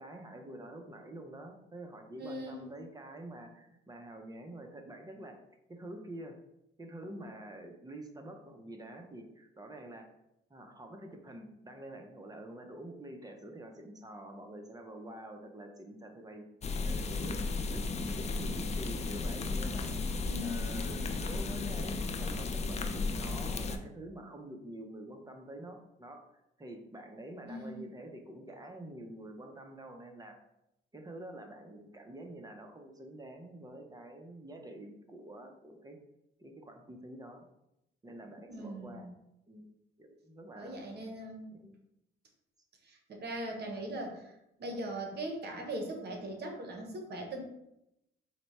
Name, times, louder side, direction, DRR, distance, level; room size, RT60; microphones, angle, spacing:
voice 1, 0.0-5.4 5.7-6.4 6.8-10.1 10.5-16.4 16.8-19.9 20.4-26.2 26.6-30.4 30.9-36.0 36.4-37.4 38.0-39.1 39.5-39.7 40.0-40.9 41.5-41.8, right 1 dB, 20° right, 4 dB, 0.6 m, -47 dB
voice 2, 2.2-2.7 20.2-20.9 27.5-27.9 38.5-39.1 40.5-41.5 42.8-44.3 44.6-47.4, right 1 dB, 55° right, 3 dB, 0.9 m, -40 dB
sound 1, 16.6-23.8, left 3 dB, 35° left, 0.4 m, -34 dB
4.3 x 2.2 x 4.1 m, 0.85 s
cardioid pair, 90°, 20 cm